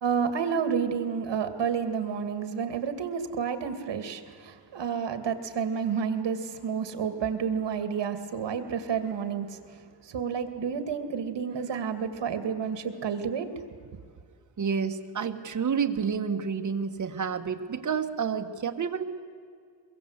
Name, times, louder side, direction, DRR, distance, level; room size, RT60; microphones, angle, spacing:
voice 1, 0.0-13.6, right 7 dB, 75° right, 9 dB, 2.3 m, -30 dB
voice 2, 14.6-19.0, right 6 dB, 45° right, 6 dB, 1.5 m, -29 dB
23.5 x 23.0 x 8.1 m, 2.1 s
wide cardioid pair, 170°, 43 cm